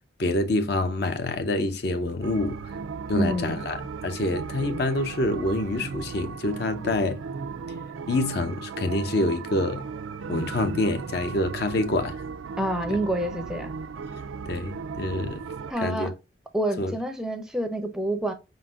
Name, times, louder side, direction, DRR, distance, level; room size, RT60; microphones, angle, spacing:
voice 1, 0.2-2.7 3.1-7.2 8.1-9.9 10.3-12.2 12.9-13.0 14.5-15.4 15.8-16.1 16.8-16.9, left 2 dB, 55° left, 0.6 m, -26 dB
sound 1, 2.2-15.7, right 5 dB, 90° right, 0.4 m, -36 dB
voice 2, 3.1-3.5 12.6-13.7 15.7-16.1 16.5-18.3, right 1 dB, 5° right, 0.5 m, -27 dB
5.0 x 3.9 x 2.3 m
head